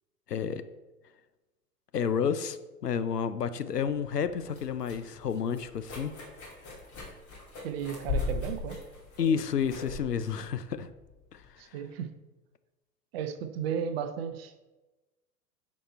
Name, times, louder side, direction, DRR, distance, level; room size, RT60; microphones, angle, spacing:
voice 1, 0.3-0.6 1.9-6.1 9.2-10.9 11.3-11.4, left 7 dB, 80° left, 12 dB, 0.6 m, -30 dB
sound 1, 4.3-11.5, left 3 dB, 30° left, 2.6 m, -39 dB
voice 2, 7.6-8.8 11.6-12.1 13.1-14.6, right 8 dB, 40° right, 9 dB, 0.7 m, -34 dB
9.8 x 4.3 x 4.3 m, 1.1 s
figure-of-eight pair, 100°, 47 cm